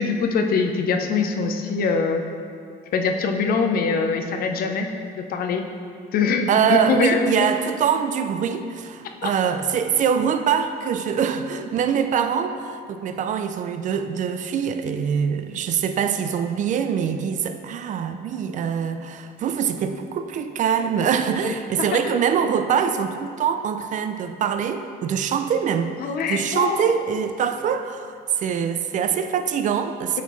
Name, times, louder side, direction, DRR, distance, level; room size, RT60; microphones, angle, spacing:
voice 1, 0.0-2.2 2.9-4.9 5.1-5.6 6.1-7.5 9.2-9.3 21.5-22.2 26.0-26.9, left 5 dB, 60° left, 5 dB, 0.6 m, -23 dB
voice 2, 6.5-25.9 26.3-30.2, right 7 dB, 50° right, 9 dB, 0.4 m, -24 dB
8.9 x 4.3 x 3.1 m, 2.2 s
cardioid pair, 110°, 17 cm